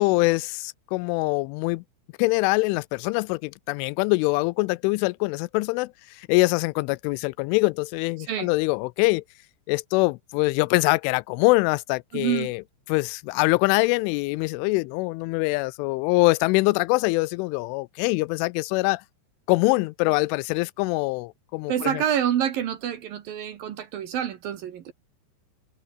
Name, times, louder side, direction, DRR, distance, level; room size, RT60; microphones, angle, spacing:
voice 1, 0.0-1.8 2.2-9.2 9.7-12.6 12.9-19.0 19.5-22.0, left 24 dB, 85° left, 3.1 m, -24 dB
voice 2, 12.1-12.5 21.7-24.9, right 10 dB, 60° right, 2.7 m, -27 dB
omnidirectional pair, 5.5 m